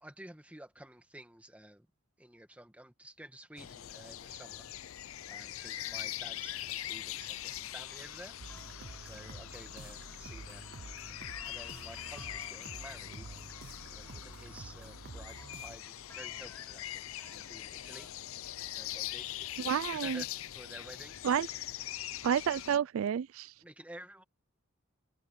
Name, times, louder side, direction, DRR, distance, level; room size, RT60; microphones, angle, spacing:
voice 1, 0.0-1.9 2.2-4.7 5.3-8.4 8.7-10.7 11.4-13.4 13.9-18.1 18.7-21.1 23.6-24.2, right 1 dB, 5° right, 1.6 m, -52 dB
sound 1, 3.6-22.8, left 13 dB, 75° left, 0.5 m, -42 dB
sound 2, 7.9-18.1, left 1 dB, 10° left, 2.8 m, -61 dB
sound 3, 8.4-15.8, right 3 dB, 50° right, 0.7 m, -49 dB
voice 2, 19.6-20.2 21.2-21.5 22.2-23.5, right 8 dB, 70° right, 0.3 m, -30 dB
head